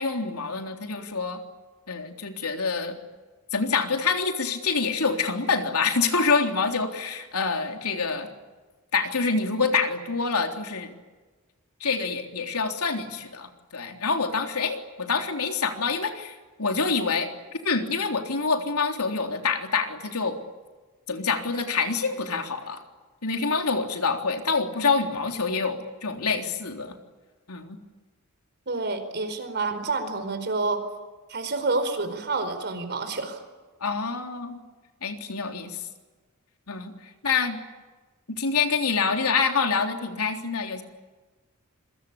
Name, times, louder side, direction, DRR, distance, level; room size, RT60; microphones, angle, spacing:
voice 1, 0.0-1.4 1.9-3.0 3.5-8.3 8.9-10.9 11.8-17.3 17.6-20.4 21.1-22.8 23.2-27.0 27.5-27.8 33.8-34.6 35.0-35.8 36.7-37.6 38.3-40.8, left 4 dB, 80° left, 4 dB, 3.6 m, -26 dB
voice 2, 28.7-30.9 31.3-33.4, right 3 dB, 50° right, 9 dB, 4.7 m, -28 dB
27.5 x 23.5 x 8.7 m, 1.3 s
head